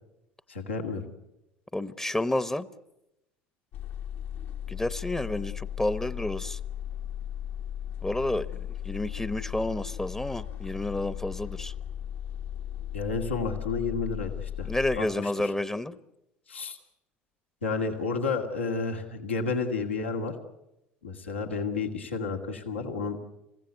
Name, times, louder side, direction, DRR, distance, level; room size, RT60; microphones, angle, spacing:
voice 1, 0.5-1.1 12.9-14.7 15.0-15.5 16.5-16.8 17.6-20.3 21.0-23.2, left 4 dB, 85° left, 3 dB, 2.3 m, -31 dB
voice 2, 1.7-2.7 4.7-6.6 8.0-11.7 14.6-16.0, left 1 dB, 10° left, 15 dB, 1.0 m, -30 dB
sound 1, 3.7-15.0, left 10 dB, 60° left, 1.6 m, -36 dB
29.0 x 16.0 x 9.4 m, 0.89 s
figure-of-eight pair, 65°, 6 cm